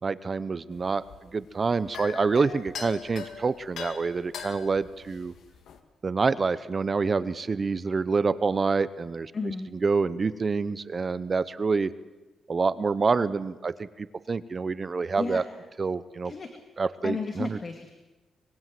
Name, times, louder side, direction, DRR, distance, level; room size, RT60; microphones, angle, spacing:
voice 1, 0.0-1.0 1.3-5.3 6.0-9.3 9.8-11.9 12.5-15.4 15.8-16.3 16.8-17.6, right 4 dB, 35° right, 15 dB, 0.8 m, -27 dB
sound 1, 0.7-5.8, left 7 dB, 80° left, 2.1 m, -41 dB
voice 2, 9.3-9.7 15.2-15.4 16.2-16.5 17.0-17.9, left 4 dB, 35° left, 5 dB, 2.2 m, -33 dB
25.0 x 22.5 x 7.7 m, 1.1 s
cardioid pair, 125°, 0 cm